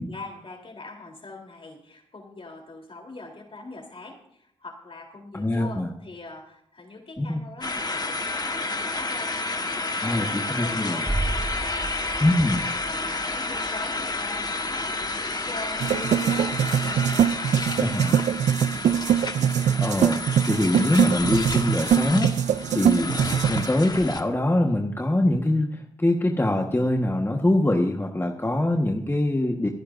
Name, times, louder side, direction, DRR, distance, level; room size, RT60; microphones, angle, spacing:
voice 1, 0.0-11.1 11.6-18.3 18.9-19.2, left 2 dB, 50° left, 2 dB, 3.6 m, -42 dB
voice 2, 5.3-5.9 7.2-7.4 10.0-11.0 12.2-12.6 17.8-18.2 19.8-20.2 20.5-22.3 22.7-29.7, left 1 dB, 20° left, 2 dB, 1.4 m, -23 dB
sound 1, 7.6-24.2, left 3 dB, 35° left, 1.4 m, -30 dB
sound 2, 11.1-16.8 17.1-17.2, right 2 dB, 15° right, 2.7 m, -35 dB
sound 3, 15.8-23.7, right 9 dB, 85° right, 0.5 m, -23 dB
27.0 x 9.9 x 2.6 m, 0.69 s
cardioid pair, 50°, 12 cm